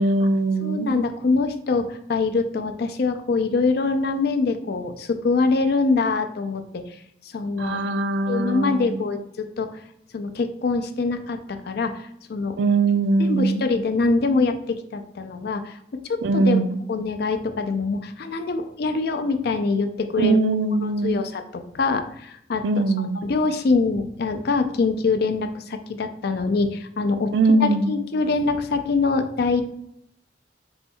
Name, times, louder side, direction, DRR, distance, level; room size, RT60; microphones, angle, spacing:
voice 1, 0.0-1.0 7.6-9.1 12.6-13.6 16.2-16.8 20.2-21.2 22.6-23.2 27.3-27.9, right 3 dB, 75° right, 11 dB, 0.4 m, -21 dB
voice 2, 0.6-6.8 7.3-7.8 8.3-9.8 10.1-12.6 13.2-15.8 16.1-16.6 16.9-20.4 20.8-27.3 27.6-29.6, left 4 dB, 60° left, 7 dB, 0.4 m, -24 dB
4.2 x 2.2 x 4.3 m, 0.73 s
head